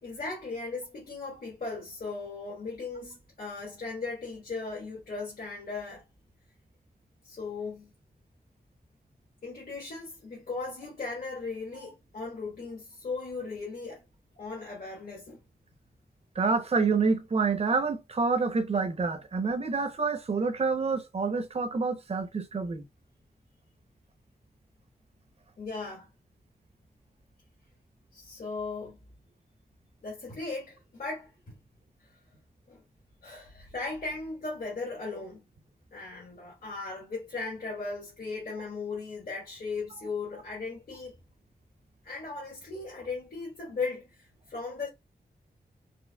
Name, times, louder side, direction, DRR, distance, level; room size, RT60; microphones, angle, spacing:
voice 1, 0.0-6.0 7.2-7.9 9.4-14.0 14.3-15.4 25.6-26.1 28.1-29.0 30.0-31.6 32.7-32.8 33.2-35.4 35.9-41.2 42.0-44.9, left 3 dB, 60° left, 1.4 m, -37 dB
voice 2, 16.4-22.8, right 4 dB, 40° right, 0.6 m, -27 dB
4.4 x 2.9 x 2.2 m
wide cardioid pair, 145°, 16 cm